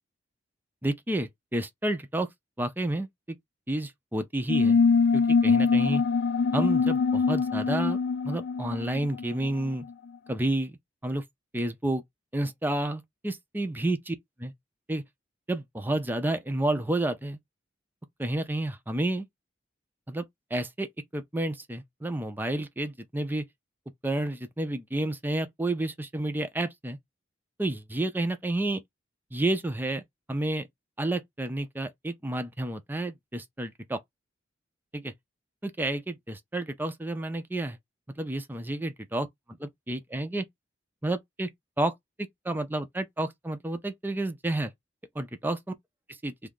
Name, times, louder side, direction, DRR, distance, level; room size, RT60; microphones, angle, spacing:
voice 1, 0.8-2.3 2.6-3.4 3.7-4.8 5.1-6.0 6.5-8.0 8.2-9.8 10.3-10.8 11.0-11.2 11.5-12.0 12.3-14.2 14.4-14.5 14.9-15.0 15.5-17.4 18.2-19.3 20.1-20.2 20.5-20.9 21.1-23.4 24.0-27.0 27.6-28.8 29.3-30.0 30.3-30.7 31.0-34.0 34.9-35.1 35.6-37.8 38.2-39.3 39.6-40.4 41.0-41.5 41.8-41.9 42.4-44.7 45.2-45.6 46.2-46.3, right 1 dB, 10° right, 0.5 m, -30 dB
sound 1, 4.5-9.7, left 5 dB, 60° left, 0.4 m, -23 dB
2.7 x 2.4 x 3.6 m
head